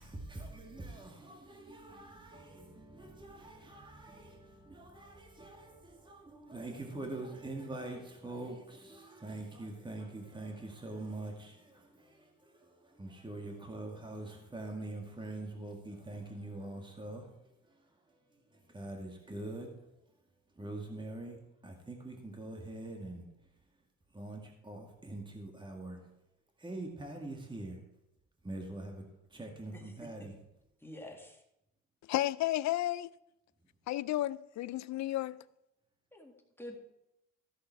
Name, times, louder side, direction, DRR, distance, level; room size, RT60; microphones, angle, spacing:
voice 1, 0.0-23.8 24.1-26.2 26.6-27.8 28.4-29.0 29.3-30.4, right 2 dB, 15° right, 1.9 m, -44 dB
voice 2, 30.8-31.4 36.1-36.8, left 1 dB, 5° left, 1.9 m, -48 dB
voice 3, 32.0-33.1 33.9-35.4, left 15 dB, 65° left, 0.5 m, -32 dB
14.0 x 6.5 x 4.6 m
cardioid pair, 90°, 30 cm